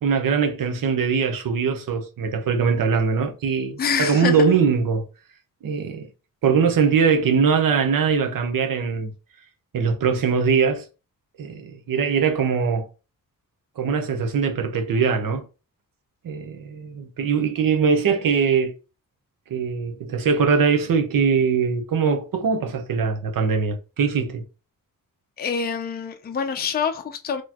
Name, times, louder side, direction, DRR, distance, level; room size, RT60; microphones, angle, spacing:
voice 1, 0.0-5.0 5.6-6.1 6.4-9.1 9.7-10.8 11.4-12.9 13.8-15.5 16.2-18.8 19.5-24.4, right 6 dB, 75° right, 0.8 m, -21 dB
voice 2, 3.8-4.4 25.4-27.4, left 6 dB, 30° left, 0.5 m, -26 dB
4.2 x 3.0 x 2.9 m
wide cardioid pair, 160°, 34 cm